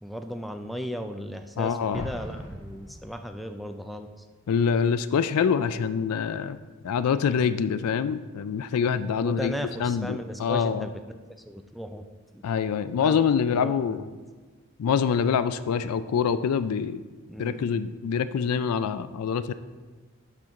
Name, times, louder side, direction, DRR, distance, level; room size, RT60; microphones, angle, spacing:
voice 1, 0.0-4.1 9.2-10.9 11.5-12.1 12.3-12.4 12.9-14.2 17.3-17.6, equal, ahead, 6 dB, 0.4 m, -36 dB
voice 2, 1.6-2.1 4.5-6.6 6.8-10.9 12.4-14.0 14.8-17.0 17.4-19.5, left 6 dB, 90° left, 12 dB, 0.4 m, -25 dB
Explosion, 1.9-3.5, equal, 15° right, 1.7 m, -40 dB
11.5 x 4.4 x 3.6 m, 1.4 s
head